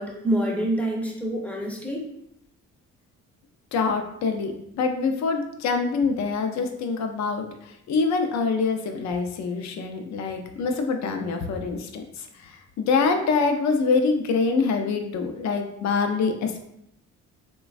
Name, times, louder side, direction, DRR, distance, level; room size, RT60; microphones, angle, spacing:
voice 1, 0.0-2.0, right 1 dB, 5° left, -1 dB, 0.6 m, -26 dB
voice 2, 3.7-7.5 7.9-16.6, left 4 dB, 65° left, 5 dB, 0.5 m, -25 dB
3.1 x 2.2 x 2.4 m, 0.77 s
cardioid pair, 90°, 30 cm